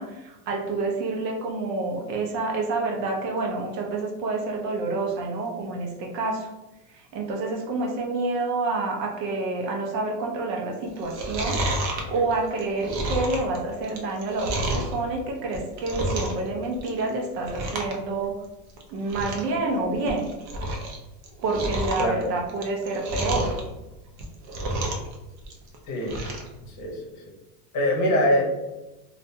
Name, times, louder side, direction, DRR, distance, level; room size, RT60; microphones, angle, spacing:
voice 1, 0.0-6.5 6.9-18.4 18.9-20.3 21.4-23.6, right 3 dB, 85° right, 0 dB, 0.8 m, -28 dB
Chewing mastication, 11.0-14.9 15.4-16.5 16.7-17.1 17.4-18.0 18.2-18.3 18.8-18.9 19.1-19.5 19.9-21.0 21.2-23.6 24.1-25.1 25.4-26.5 26.9-27.0, right 1 dB, 55° right, 0.7 m, -30 dB
voice 2, 26.7-27.0 27.7-28.4, left 1 dB, 40° left, 0 dB, 0.7 m, -23 dB
2.5 x 2.1 x 2.7 m, 1.0 s
supercardioid pair, 120°, 48 cm